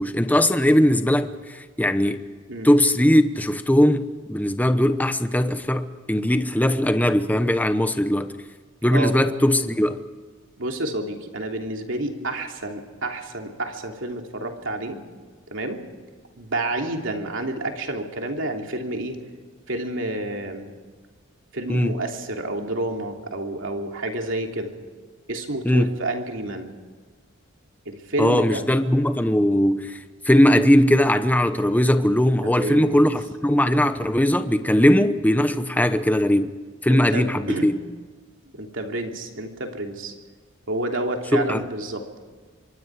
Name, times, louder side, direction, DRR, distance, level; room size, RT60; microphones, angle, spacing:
voice 1, 0.0-2.2 2.6-8.4 8.8-10.0 21.7-22.0 25.6-25.9 28.2-36.5 36.8-37.8 41.3-41.7, left 1 dB, 10° left, 0.9 m, -19 dB
voice 2, 10.6-15.0 15.5-15.8 16.4-19.2 19.7-20.7 21.5-24.7 25.3-26.7 27.8-28.6 32.4-33.1 36.9-37.7 38.5-40.1 40.7-42.0, right 1 dB, 65° right, 3.1 m, -29 dB
25.5 x 23.0 x 4.9 m
head